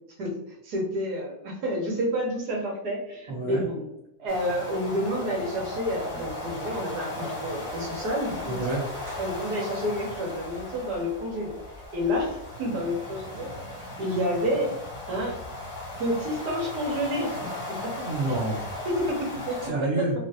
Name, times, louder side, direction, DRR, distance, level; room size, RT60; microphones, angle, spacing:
voice 1, 0.6-3.9 4.2-8.6 9.2-11.6 11.9-13.5 14.0-14.7 15.1-15.4 16.0-17.3 17.7-17.9 18.8-20.0, equal, 80° right, -2 dB, 1.4 m, -29 dB
voice 2, 3.3-3.6 8.5-9.2 18.0-18.7 19.7-20.1, right 2 dB, 20° right, -6 dB, 1.0 m, -29 dB
sound 1, 4.3-19.7, left 2 dB, 25° left, 0.8 m, -37 dB
3.0 x 2.4 x 2.7 m, 0.84 s
omnidirectional pair, 1.7 m